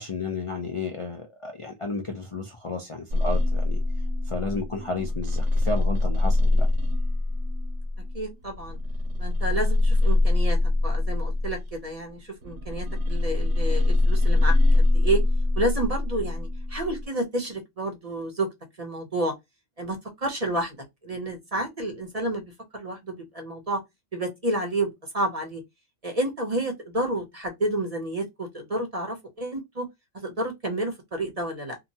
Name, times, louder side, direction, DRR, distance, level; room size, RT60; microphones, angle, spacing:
voice 1, 0.0-3.8 4.3-6.7, left 3 dB, 55° left, 0.3 m, -32 dB
sound 1, 3.1-11.8 12.4-17.1, left 2 dB, 90° right, 1.2 m, -23 dB
voice 2, 8.1-8.8 9.2-10.6 10.8-15.2 15.6-18.5 18.8-19.3 19.8-20.8 21.0-23.8 24.1-25.6 26.0-29.9 30.2-31.8, right 1 dB, 35° right, 0.7 m, -30 dB
2.8 x 2.2 x 2.7 m
omnidirectional pair, 1.3 m